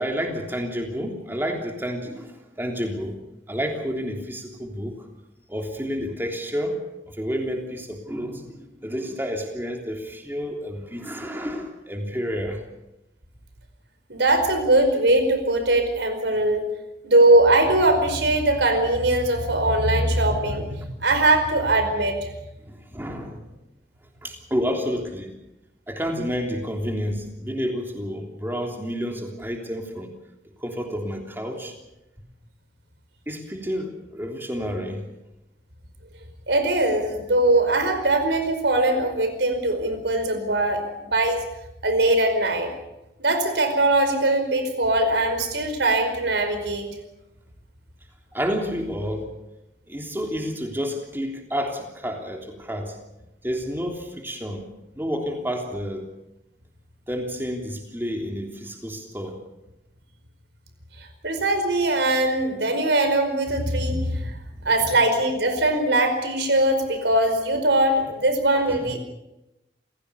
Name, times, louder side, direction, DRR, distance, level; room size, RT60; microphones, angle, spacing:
voice 1, 0.0-3.2 3.5-5.1 5.5-12.6 19.7-19.8 22.6-23.5 24.2-25.4 25.9-30.1 30.6-31.8 33.3-35.1 48.3-49.3 49.9-53.0 53.4-54.7 55.0-56.0 57.1-59.4 64.6-64.9 68.6-68.9, equal, 10° right, 2 dB, 3.3 m, -30 dB
voice 2, 14.1-16.6 17.0-22.2 36.5-41.4 41.8-42.7 43.2-46.9 61.2-64.4 64.6-69.0, right 2 dB, 85° right, 8 dB, 5.0 m, -21 dB
28.0 x 16.5 x 6.9 m, 0.94 s
head